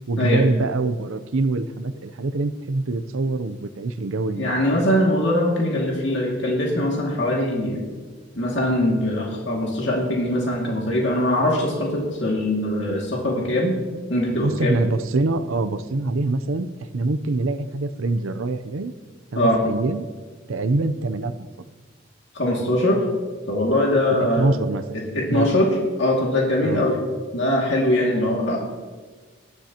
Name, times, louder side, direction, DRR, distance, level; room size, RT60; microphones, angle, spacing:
voice 1, 0.1-4.6 14.4-16.7 16.9-18.9 19.3-20.1 20.5-21.5 24.4-25.0 25.3-25.5 26.6-26.9, right 2 dB, 85° right, 11 dB, 0.6 m, -24 dB
voice 2, 4.4-7.8 8.4-13.8 14.1-14.8 19.3-19.6 22.3-23.0 23.5-24.5 24.9-25.7 26.0-27.0 27.3-28.6, left 1 dB, 60° left, -2 dB, 2.3 m, -22 dB
19.0 x 12.0 x 2.9 m, 1.4 s
head